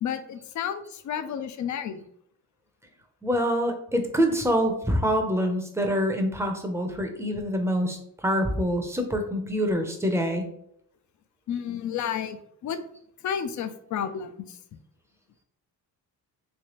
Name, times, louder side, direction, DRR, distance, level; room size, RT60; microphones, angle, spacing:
voice 1, 0.0-2.0 11.5-12.8 13.2-14.6, left 8 dB, 55° left, 11 dB, 0.5 m, -31 dB
voice 2, 3.2-10.5, equal, 5° right, 4 dB, 0.6 m, -25 dB
3.2 x 3.2 x 3.0 m, 0.69 s
cardioid pair, 95°, 37 cm